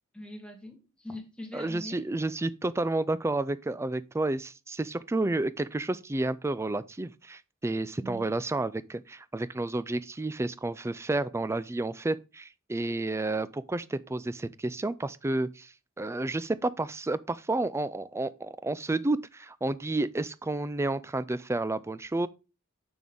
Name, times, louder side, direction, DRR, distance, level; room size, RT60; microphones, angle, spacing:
voice 1, 0.1-2.0 8.0-8.3, left 1 dB, 5° left, 1.7 m, -42 dB
voice 2, 1.5-22.3, right 2 dB, 15° right, 0.3 m, -31 dB
6.9 x 6.2 x 3.5 m
head